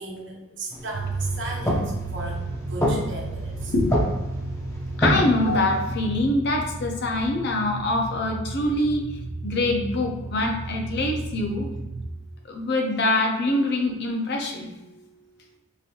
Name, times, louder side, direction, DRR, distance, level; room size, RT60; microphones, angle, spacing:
voice 1, 0.0-3.7, right 2 dB, 60° right, -2 dB, 1.0 m, -36 dB
sound 1, 0.7-5.9, equal, 15° left, 0.6 m, -28 dB
sound 2, 0.9-12.1, right 2 dB, 80° right, 0.5 m, -33 dB
voice 2, 5.0-9.0 9.4-11.7 12.5-14.7, left 2 dB, 55° left, 2 dB, 0.7 m, -24 dB
5.0 x 2.6 x 2.8 m, 1.0 s
head